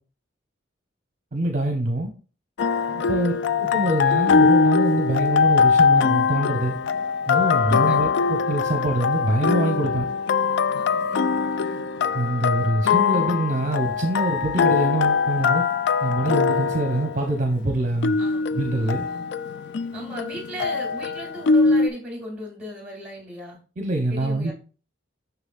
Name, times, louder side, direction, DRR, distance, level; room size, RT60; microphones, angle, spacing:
voice 1, 1.3-2.1 3.1-6.8 7.3-10.1 12.1-15.6 16.0-18.2 18.5-19.0 23.8-24.5, right 1 dB, 40° right, 0.8 m, -25 dB
sound 1, 2.6-21.9, left 5 dB, 65° left, 0.3 m, -22 dB
voice 2, 2.9-3.4 7.5-8.1 10.7-11.8 18.2-18.5 18.8-19.3 19.9-23.6 24.1-24.5, equal, 5° right, 2.2 m, -38 dB
6.7 x 6.0 x 2.4 m
head